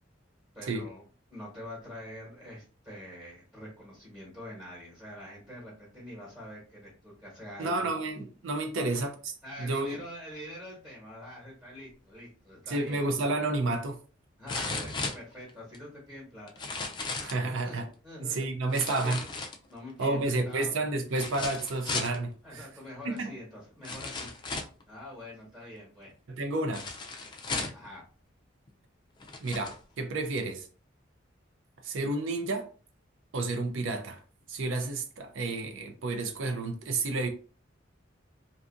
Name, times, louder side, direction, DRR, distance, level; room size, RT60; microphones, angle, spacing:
voice 1, 0.5-1.0 1.3-7.9 8.8-9.0 9.4-13.1 14.4-16.5 17.5-17.8 18.0-18.4 18.9-19.3 19.7-20.8 22.4-24.3 24.9-26.1 27.7-28.0, left 1 dB, 15° right, 1.0 m, -45 dB
voice 2, 7.6-9.3 9.6-10.0 12.7-14.0 14.6-14.8 17.2-17.8 18.2-19.2 20.0-22.7 23.0-23.3 26.4-26.9 29.4-30.7 31.8-32.7 33.3-34.2 34.5-37.3, right 2 dB, 85° right, 0.5 m, -31 dB
sound 1, 13.1-13.2 14.5-15.8 16.5-17.4 18.7-19.9 21.1-22.2 23.2-23.3 23.8-24.8 26.7-27.9 28.7-28.8 29.2-29.8 30.4-30.5, left 3 dB, 25° left, 0.3 m, -36 dB
2.6 x 2.4 x 2.5 m
head